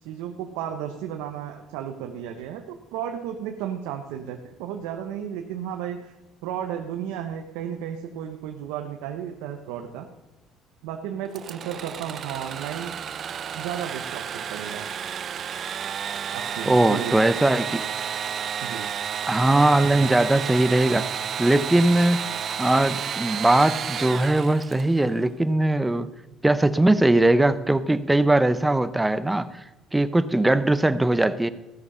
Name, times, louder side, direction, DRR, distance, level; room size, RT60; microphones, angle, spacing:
voice 1, 0.0-6.1 6.4-10.1 10.8-12.9 13.5-14.9 16.3-17.2 18.6-18.9, right 9 dB, 90° right, 4 dB, 0.8 m, -33 dB
Engine / Sawing, 11.3-25.0, right 8 dB, 50° right, 0.5 m, -31 dB
voice 2, 16.7-17.9 19.3-21.1 21.4-22.2 22.6-26.1 26.4-29.6 29.9-31.5, right 1 dB, 10° right, 13 dB, 0.7 m, -20 dB
15.5 x 6.5 x 5.6 m, 1.0 s
supercardioid pair, 90°, 0 cm